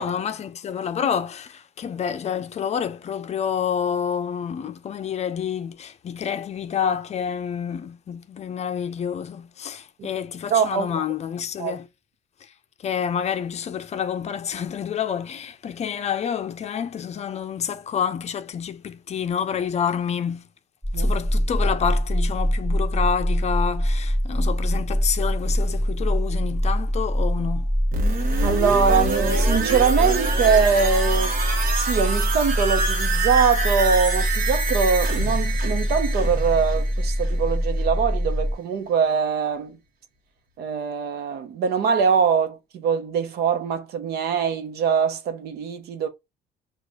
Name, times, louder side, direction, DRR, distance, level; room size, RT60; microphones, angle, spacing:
voice 1, 0.0-11.9 12.4-12.5 12.8-20.5 21.0-27.7, left 8 dB, 40° left, 0.5 m, -28 dB
voice 2, 10.5-11.0 11.6-11.8 20.9-21.1 28.4-31.4 31.7-39.8 40.6-46.1, right 6 dB, 70° right, 0.9 m, -23 dB
sound 1, 20.8-38.5, equal, 10° right, 1.0 m, -24 dB
sound 2, 27.9-37.6 38.0-38.1, right 3 dB, 55° right, 1.2 m, -27 dB
6.1 x 2.4 x 2.4 m
cardioid pair, 110°, 17 cm